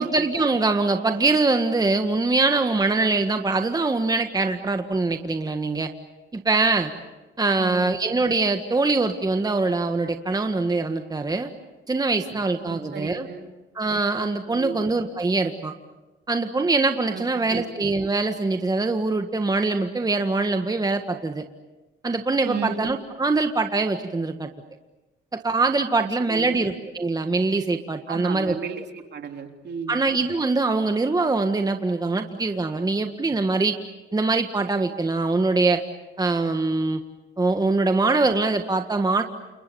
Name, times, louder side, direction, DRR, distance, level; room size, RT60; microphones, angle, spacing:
voice 1, 0.0-5.9 6.3-6.9 7.4-11.5 11.9-13.3 13.7-15.7 16.3-21.4 22.0-24.5 25.3-28.5 29.9-33.7 34.1-35.8 36.2-37.0 37.4-39.2, right 3 dB, 20° right, 6 dB, 1.7 m, -23 dB
voice 2, 7.6-7.9 12.3-12.4 12.7-13.5 14.5-14.8 17.1-17.7 22.4-22.9 26.0-26.6 28.1-30.0, right 6 dB, 60° right, 4 dB, 3.2 m, -34 dB
29.5 x 28.5 x 7.1 m, 1.1 s
cardioid pair, 90°, 20 cm